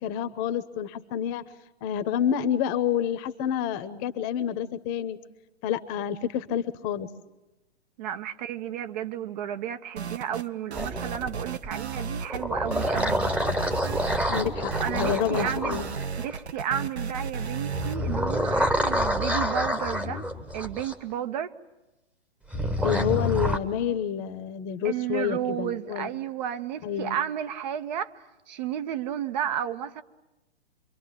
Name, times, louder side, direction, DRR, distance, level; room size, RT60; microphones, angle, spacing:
voice 1, 0.0-1.4 1.8-5.2 5.6-7.1 14.3-15.9 22.8-26.1 26.8-27.2, left 9 dB, 30° left, 1.1 m, -28 dB
voice 2, 8.0-13.2 14.8-15.8 16.2-20.2 20.5-21.5 24.8-30.0, right 10 dB, 40° right, 0.9 m, -32 dB
sound 1, 10.0-10.5 10.7-12.4 12.7-18.0, right 5 dB, 75° right, 1.1 m, -34 dB
sound 2, 10.7-11.7 12.2-16.5 17.7-20.9 22.5-23.6, equal, 5° right, 1.1 m, -28 dB
26.0 x 23.0 x 9.1 m
figure-of-eight pair, 120°, 33 cm